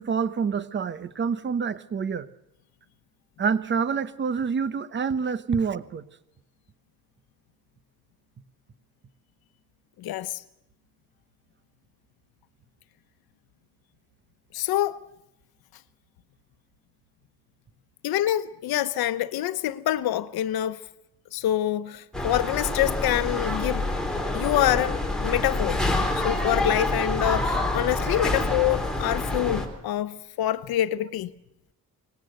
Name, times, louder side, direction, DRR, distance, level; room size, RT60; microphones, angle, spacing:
voice 1, 0.0-2.3 3.4-6.0, right 6 dB, 30° right, 1.0 m, -27 dB
voice 2, 10.0-10.4 14.5-15.0 18.0-20.8 21.3-23.9 24.3-25.8 26.1-31.3, left 13 dB, 85° left, 1.0 m, -26 dB
sound 1, 22.1-29.7, left 2 dB, ahead, 3.2 m, -27 dB
25.0 x 19.5 x 7.9 m
cardioid pair, 170°, 36 cm